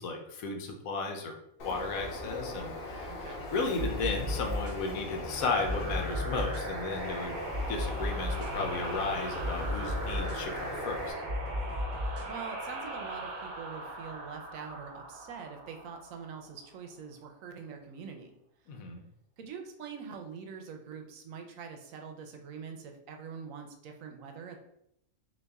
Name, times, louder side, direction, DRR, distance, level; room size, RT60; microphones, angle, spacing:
voice 1, 0.0-1.3 1.6-7.4 7.7-11.1 18.7-19.0, left 3 dB, 80° left, 3 dB, 1.2 m, -34 dB
Bird, 1.6-11.1, left 2 dB, 50° left, 0.9 m, -40 dB
voice 2, 3.1-3.5 12.3-18.4 19.4-24.6, right 6 dB, 75° right, 4 dB, 1.0 m, -44 dB
sound 1, 3.7-12.3, left 1 dB, 10° right, 0.9 m, -36 dB
sound 2, 5.3-16.7, right 2 dB, 45° right, 0.7 m, -40 dB
4.1 x 2.8 x 3.4 m, 0.80 s
omnidirectional pair, 1.4 m